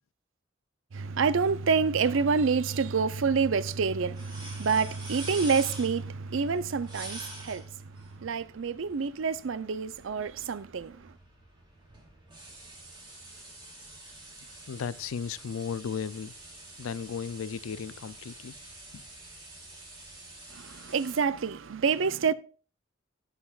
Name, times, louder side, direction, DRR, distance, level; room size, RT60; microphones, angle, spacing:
voice 1, 0.9-7.7 8.2-11.1 20.5-22.3, right 5 dB, 70° right, 0.5 m, -27 dB
sound 1, 3.7-21.2, right 2 dB, 25° right, 2.7 m, -47 dB
voice 2, 14.7-16.3 16.8-18.6, left 6 dB, 85° left, 0.4 m, -35 dB
16.0 x 6.5 x 2.4 m
head